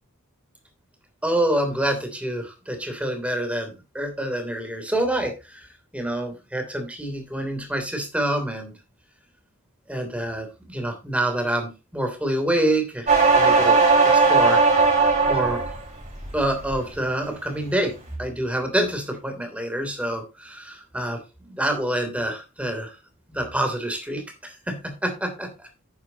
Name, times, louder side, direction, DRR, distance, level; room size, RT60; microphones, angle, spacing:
voice 1, 1.2-8.7 9.9-13.8 14.0-14.6 15.3-15.6 16.3-17.9 18.2-23.0 23.3-25.5, right 1 dB, 5° right, 5 dB, 3.0 m, -27 dB
sound 1, 13.1-15.8 16.2-16.7, right 4 dB, 35° right, 5.4 m, -17 dB
10.5 x 9.6 x 2.8 m, 0.28 s
head